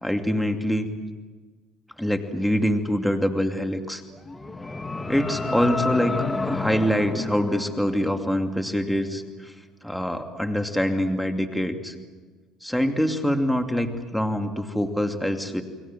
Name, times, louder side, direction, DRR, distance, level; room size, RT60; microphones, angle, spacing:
voice 1, 0.0-0.9 2.0-4.0 5.1-6.2 6.4-9.5 9.8-11.9 12.6-15.6, equal, ahead, 5 dB, 2.7 m, -25 dB
sound 1, 4.1-8.4, left 3 dB, 20° left, 1.8 m, -30 dB
30.0 x 22.0 x 7.6 m, 1.4 s
supercardioid pair, 75°, 0 cm